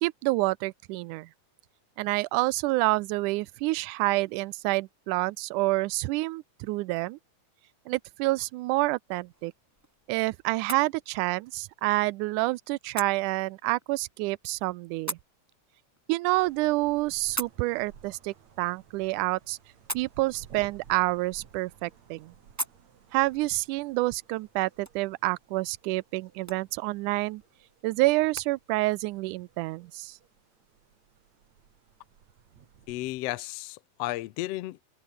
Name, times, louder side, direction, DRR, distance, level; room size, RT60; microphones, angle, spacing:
voice 1, 0.0-1.3 2.0-7.2 7.9-9.5 10.1-15.2 16.1-19.6 19.9-22.3 23.1-27.4 27.8-30.1, right 21 dB, 80° right, 2.0 m, -28 dB
sound 1, 9.0-28.5, right 1 dB, 10° right, 0.9 m, -45 dB
sound 2, 16.3-33.2, right 8 dB, 60° right, 3.5 m, -56 dB
voice 2, 32.9-34.8, left 18 dB, 90° left, 1.4 m, -33 dB
open air
omnidirectional pair, 3.8 m